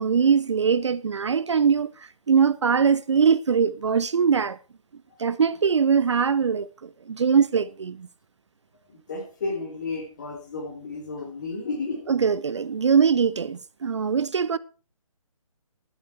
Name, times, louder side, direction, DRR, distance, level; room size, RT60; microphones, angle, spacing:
voice 1, 0.0-1.9 2.3-4.6 5.2-8.1 12.1-14.6, right 6 dB, 50° right, 0.4 m, -22 dB
voice 2, 9.1-12.0, left 3 dB, 30° left, 2.8 m, -32 dB
12.0 x 8.0 x 4.4 m
hypercardioid pair, 175°, 18 cm